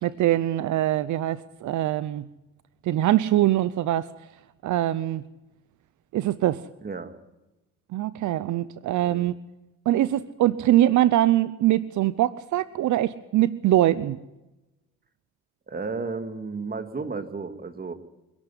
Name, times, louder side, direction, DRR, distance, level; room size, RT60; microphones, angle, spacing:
voice 1, 0.0-2.3 2.8-4.1 4.6-5.2 6.1-6.7 7.9-9.3 9.9-14.2, right 13 dB, 75° right, 17 dB, 0.7 m, -23 dB
voice 2, 6.8-7.1 9.0-9.2 15.7-17.9, right 4 dB, 30° right, 8 dB, 2.3 m, -33 dB
25.5 x 11.5 x 9.9 m, 0.97 s
cardioid pair, 90°, 30 cm